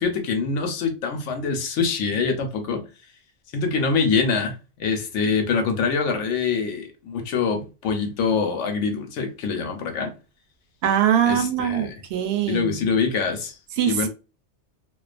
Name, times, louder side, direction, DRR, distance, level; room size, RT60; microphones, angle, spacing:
voice 1, 0.0-2.8 3.5-10.1 11.3-12.0 12.5-13.6 13.8-14.1, left 5 dB, 80° left, 1.0 m, -24 dB
voice 2, 10.8-12.9 13.8-14.1, right 9 dB, 70° right, 0.8 m, -22 dB
2.4 x 2.2 x 2.4 m
omnidirectional pair, 1.2 m